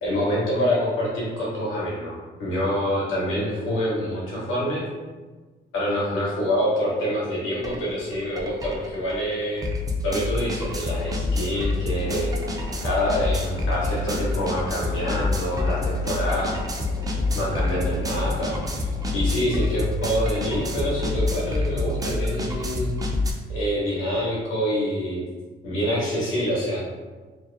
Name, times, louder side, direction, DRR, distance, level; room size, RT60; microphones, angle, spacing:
voice 1, 0.0-4.8 5.7-9.6 10.0-12.3 12.8-16.6 17.3-22.9 23.5-25.2 25.6-26.8, equal, 85° left, -6 dB, 1.1 m, -26 dB
sound 1, 7.6-7.8 8.1-23.3, left 2 dB, 20° right, 0.4 m, -27 dB
sound 2, 11.9-19.4, equal, 65° left, 0.8 m, -41 dB
2.7 x 2.0 x 2.5 m, 1.3 s
cardioid pair, 90°, 20 cm